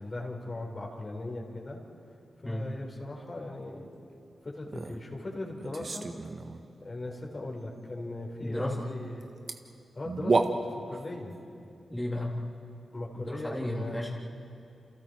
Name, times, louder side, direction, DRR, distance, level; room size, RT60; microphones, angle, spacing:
voice 1, 0.0-1.8 2.4-3.9 4.4-6.1 6.8-9.3 9.9-11.3 12.9-14.0, left 2 dB, 40° left, 0 dB, 4.4 m, -39 dB
sound 1, 4.7-5.0 5.6-6.6 9.2-9.3 9.5-9.6 10.0-11.0, right 3 dB, 50° right, 1.6 m, -30 dB
voice 2, 8.4-8.9 11.9-12.4 13.2-14.1, left 1 dB, 15° left, -4 dB, 3.3 m, -33 dB
29.0 x 28.5 x 4.7 m, 2.6 s
cardioid pair, 55°, 0 cm